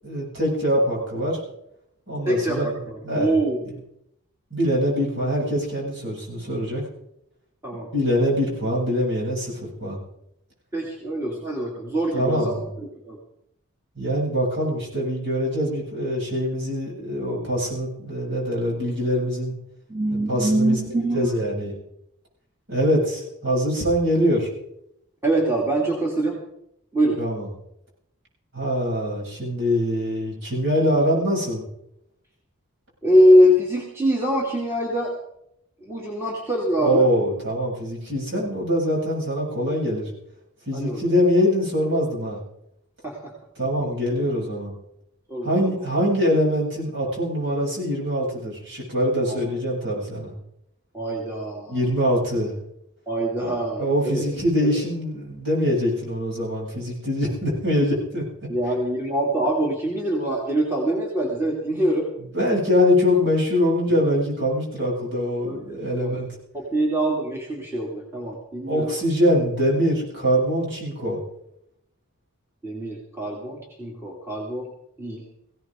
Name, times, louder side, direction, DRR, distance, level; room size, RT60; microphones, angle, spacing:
voice 1, 0.0-1.4 2.1-2.7 3.0-3.3 4.5-6.8 7.9-10.0 12.1-12.7 13.9-19.5 20.3-20.8 21.1-21.8 22.7-24.5 27.2-27.5 28.5-31.6 36.8-40.1 40.7-42.4 43.6-44.7 45.4-50.3 51.7-52.6 53.4-58.2 62.3-66.3 68.7-71.2, equal, 50° right, -4 dB, 7.9 m, -23 dB
voice 2, 2.2-3.8 7.6-7.9 10.7-12.6 13.0-13.2 19.9-21.3 25.2-26.4 26.9-27.2 33.0-35.1 35.8-37.1 40.7-41.0 43.0-43.3 45.3-45.9 49.2-49.4 50.9-51.8 53.1-54.2 54.6-54.8 58.5-62.1 65.4-66.1 66.5-69.0 72.6-74.7 75.0-75.2, equal, 10° right, -3 dB, 2.7 m, -23 dB
20.0 x 17.0 x 3.8 m, 0.77 s
head